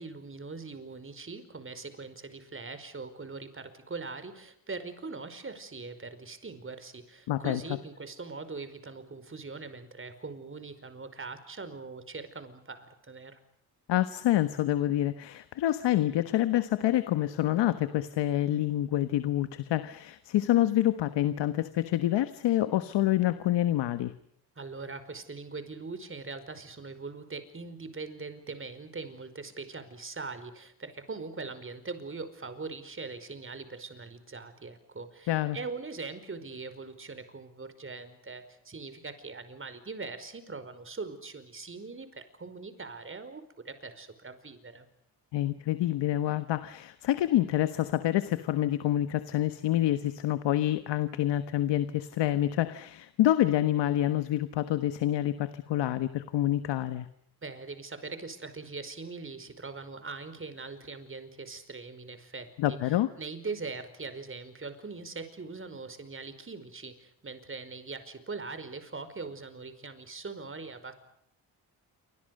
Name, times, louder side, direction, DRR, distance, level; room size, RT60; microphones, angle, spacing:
voice 1, 0.0-13.4 24.5-44.9 57.4-70.9, right 4 dB, 30° right, 11 dB, 5.1 m, -41 dB
voice 2, 7.3-7.6 13.9-24.1 35.3-35.6 45.3-57.1 62.6-63.1, left 13 dB, 90° left, 11 dB, 1.4 m, -27 dB
28.5 x 25.5 x 6.7 m, 0.69 s
cardioid pair, 90°, 41 cm